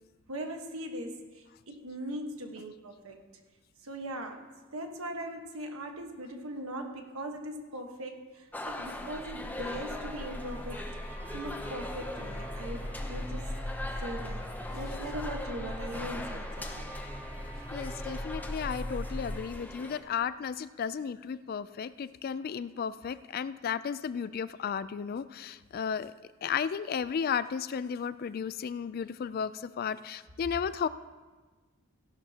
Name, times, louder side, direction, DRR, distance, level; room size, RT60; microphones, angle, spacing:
voice 1, 0.3-3.2 3.8-10.8 11.3-13.4 14.0-16.8, right 1 dB, 75° right, 4 dB, 1.3 m, -40 dB
sound 1, 8.5-20.0, left 1 dB, 10° left, 0.6 m, -42 dB
sound 2, 8.7-19.4, left 1 dB, 10° right, 2.2 m, -39 dB
voice 2, 17.7-26.1 26.4-30.9, left 7 dB, 45° left, 15 dB, 0.3 m, -34 dB
16.0 x 11.5 x 2.9 m, 1.3 s
head